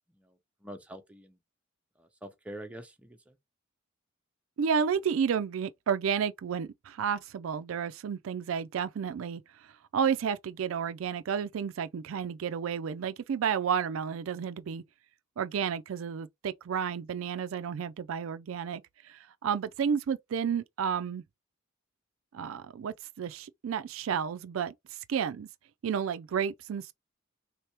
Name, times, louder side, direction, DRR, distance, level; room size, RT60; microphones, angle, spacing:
voice 1, 0.6-1.4 2.0-3.3, right 1 dB, 5° right, 0.6 m, -45 dB
voice 2, 4.6-9.4 9.9-14.8 15.4-21.2 22.3-24.7 25.1-25.5 25.8-26.9, right 7 dB, 80° right, 0.4 m, -31 dB
3.3 x 3.2 x 2.9 m
head